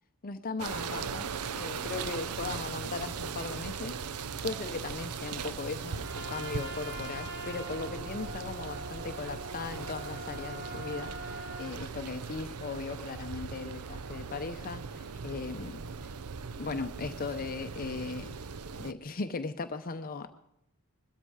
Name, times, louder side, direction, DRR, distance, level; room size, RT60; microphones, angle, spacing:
voice 1, 0.2-15.8 16.6-18.3 18.8-20.3, left 4 dB, 40° left, 9 dB, 0.7 m, -38 dB
sound 1, 0.6-18.9, right 5 dB, 85° right, 0.6 m, -39 dB
Trumpet, 6.0-11.8, right 1 dB, 50° right, 2.7 m, -43 dB
21.0 x 13.5 x 4.8 m, 0.77 s
head